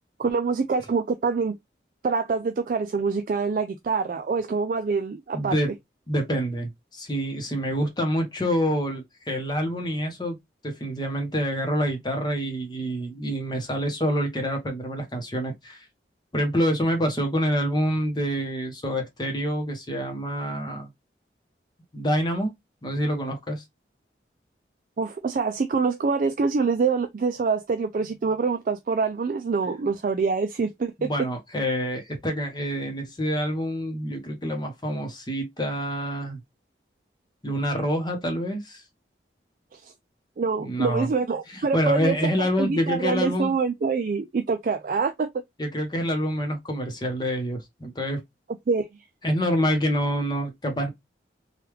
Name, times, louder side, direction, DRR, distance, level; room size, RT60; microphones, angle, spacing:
voice 1, 0.2-1.6 2.0-5.5 25.0-30.9 39.7-39.9 40.4-45.3 48.7-48.9, right 4 dB, 45° right, 0.3 m, -25 dB
voice 2, 5.3-5.7 6.1-10.4 10.6-15.9 16.3-20.9 21.9-22.5 22.8-23.6 31.0-36.4 37.4-38.8 40.6-41.1 41.5-43.5 45.6-48.2 49.2-50.9, equal, 25° left, 0.8 m, -27 dB
3.2 x 2.3 x 3.1 m
head